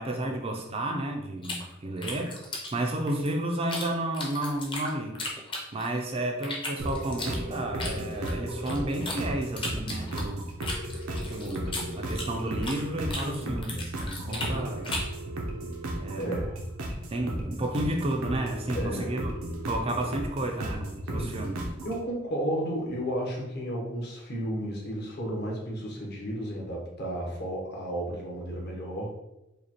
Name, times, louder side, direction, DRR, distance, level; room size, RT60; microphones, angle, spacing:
voice 1, 0.0-2.3 2.7-5.2 5.7-10.5 11.2-14.9 16.0-16.4 17.1-19.3 19.6-21.6, right 1 dB, 30° right, 2 dB, 0.4 m, -32 dB
sound 1, 1.4-3.9 4.1-6.0 6.4-9.2 9.6-12.8 13.1-15.2, left 2 dB, 25° left, 0.7 m, -36 dB
sound 2, 6.8-22.0, right 1 dB, 90° right, 0.7 m, -35 dB
voice 2, 13.2-13.6 14.2-14.7 16.2-16.6 18.7-19.1 21.1-21.3 21.8-29.1, right 1 dB, 50° left, -2 dB, 1.0 m, -33 dB
4.9 x 2.3 x 2.9 m, 0.93 s
head